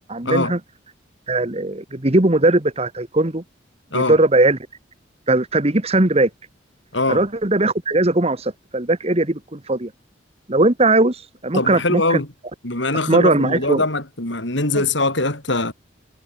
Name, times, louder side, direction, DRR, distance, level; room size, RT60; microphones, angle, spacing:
voice 1, 0.1-0.6 1.3-3.4 3.9-4.6 5.3-6.3 7.1-9.9 10.5-12.2 13.1-13.8 14.7-14.8, right 2 dB, 30° right, 1.6 m, -19 dB
voice 2, 6.9-7.2 11.5-12.3 12.6-15.7, left 2 dB, 65° left, 5.8 m, -22 dB
head